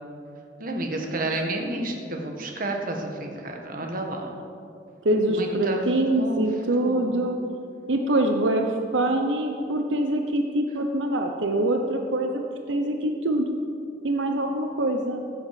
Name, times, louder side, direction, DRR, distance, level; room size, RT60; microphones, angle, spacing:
voice 1, 0.6-4.3 5.3-5.8 6.2-6.4 6.8-7.2, right 1 dB, 50° right, 2 dB, 1.7 m, -30 dB
voice 2, 5.0-7.4 7.9-8.7 8.9-12.4 12.7-13.6 14.0-15.3, right 1 dB, 85° right, 4 dB, 0.9 m, -24 dB
15.5 x 7.9 x 7.7 m, 2.5 s
head